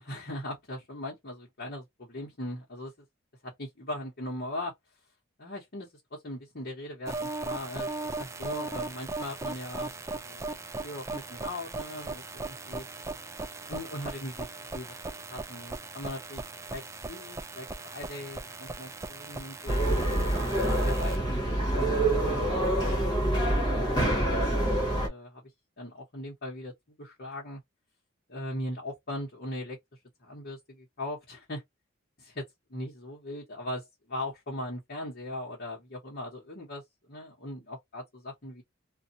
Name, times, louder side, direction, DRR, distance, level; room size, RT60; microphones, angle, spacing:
voice 1, 0.0-2.9 3.4-4.7 5.4-10.5 10.8-12.9 13.7-15.0 15.3-16.4 16.7-19.8 20.6-24.8 25.1-25.4 25.8-26.7 27.0-27.6 28.3-29.8 30.2-31.6 32.2-38.6, left 1 dB, 50° left, 1.1 m, -40 dB
sound 1, 7.1-21.2, right 3 dB, 15° right, 0.4 m, -38 dB
sound 2, 19.7-25.1, right 1 dB, 20° left, 1.3 m, -26 dB
2.7 x 2.5 x 2.5 m
head